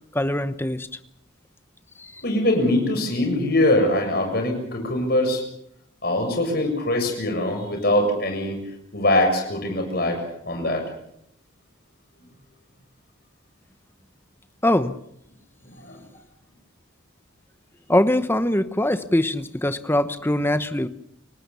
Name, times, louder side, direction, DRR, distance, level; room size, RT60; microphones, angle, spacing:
voice 1, 0.1-0.9 2.0-2.2 14.6-14.9 17.9-20.9, left 1 dB, 10° left, 12 dB, 1.0 m, -22 dB
voice 2, 2.2-5.4 6.0-8.6 8.9-10.8 15.8-16.0, left 1 dB, 50° left, 3 dB, 7.2 m, -22 dB
29.5 x 18.0 x 7.0 m, 0.72 s
head